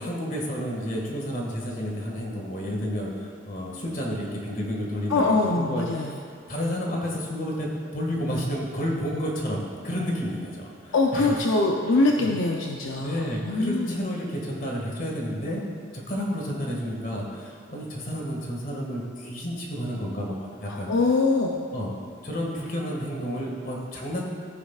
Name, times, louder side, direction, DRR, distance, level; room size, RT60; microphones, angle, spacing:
voice 1, 0.0-6.1 6.5-11.3 11.9-12.3 13.0-15.6 15.9-20.9 21.7-21.9 22.2-24.2, equal, 40° left, -2 dB, 1.9 m, -31 dB
voice 2, 5.1-6.1 10.9-13.9 20.7-21.7, left 3 dB, 75° left, 0 dB, 0.6 m, -23 dB
14.5 x 9.6 x 2.4 m, 2.4 s
head